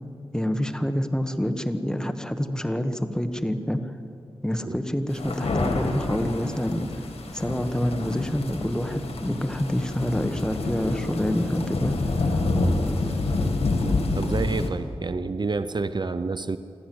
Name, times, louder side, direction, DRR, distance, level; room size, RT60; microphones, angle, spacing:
voice 1, 0.3-3.8 4.4-6.9 7.3-11.9, equal, 5° left, 8 dB, 1.4 m, -27 dB
sound 1, 5.1-14.7, left 2 dB, 90° left, 2.1 m, -27 dB
voice 2, 14.2-16.6, right 4 dB, 45° right, 12 dB, 0.6 m, -28 dB
25.5 x 14.0 x 7.8 m, 2.5 s
wide cardioid pair, 70°, 10 cm